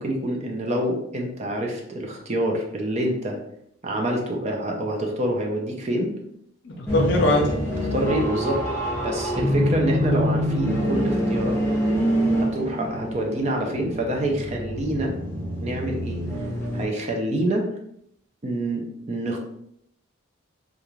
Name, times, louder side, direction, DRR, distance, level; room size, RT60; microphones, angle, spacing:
voice 1, 0.0-3.4 3.8-6.1 7.9-8.6 9.0-11.8 12.4-15.1 15.6-16.2 16.7-17.7 18.4-19.4, right 1 dB, 30° right, 1 dB, 0.4 m, -26 dB
voice 2, 6.6-7.5, left 1 dB, 55° left, 1 dB, 0.6 m, -21 dB
sound 1, 6.9-16.8, equal, 10° left, 0.6 m, -25 dB
2.4 x 2.4 x 3.0 m, 0.73 s
head